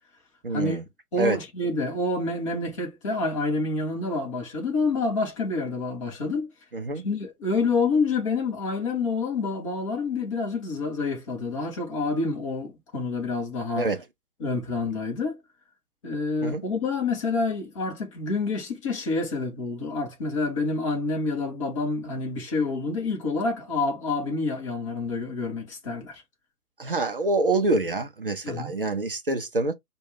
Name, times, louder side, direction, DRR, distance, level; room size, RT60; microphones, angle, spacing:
voice 1, 0.4-0.8 1.2-1.4 6.7-7.0 13.8-14.0 16.4-16.6 26.8-29.7, right 2 dB, 40° right, 0.4 m, -26 dB
voice 2, 1.1-6.5 7.0-13.9 14.4-15.4 16.0-26.2 28.4-28.7, left 3 dB, 20° left, 0.8 m, -28 dB
4.6 x 2.3 x 3.2 m
figure-of-eight pair, 135°, 45 cm